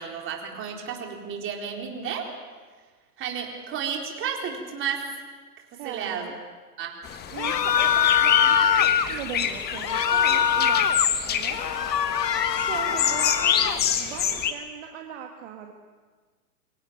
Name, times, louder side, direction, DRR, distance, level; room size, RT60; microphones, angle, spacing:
voice 1, 0.0-2.3 3.2-5.0 5.8-6.3 6.8-6.9, right 7 dB, 25° right, 1 dB, 4.1 m, -32 dB
voice 2, 5.8-6.4 7.3-11.0 11.2-11.6 12.5-15.7, right 8 dB, 45° right, 3 dB, 2.1 m, -39 dB
sound 1, 7.0-14.5, left 8 dB, 20° left, 1.6 m, -27 dB
sound 2, 7.4-9.1 9.8-11.1 11.5-13.8, left 8 dB, 80° left, 1.1 m, -23 dB
24.0 x 17.5 x 8.8 m, 1.5 s
hypercardioid pair, 115°, 48 cm